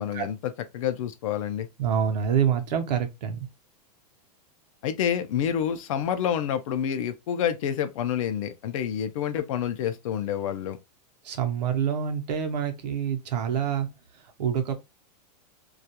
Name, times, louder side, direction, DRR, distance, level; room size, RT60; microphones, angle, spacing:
voice 1, 0.0-1.7 4.8-10.8, left 9 dB, 55° left, 0.4 m, -28 dB
voice 2, 1.8-3.5 11.2-13.9 14.4-14.7, right 8 dB, 80° right, 0.7 m, -26 dB
2.3 x 2.2 x 2.8 m
supercardioid pair, 170°, 21 cm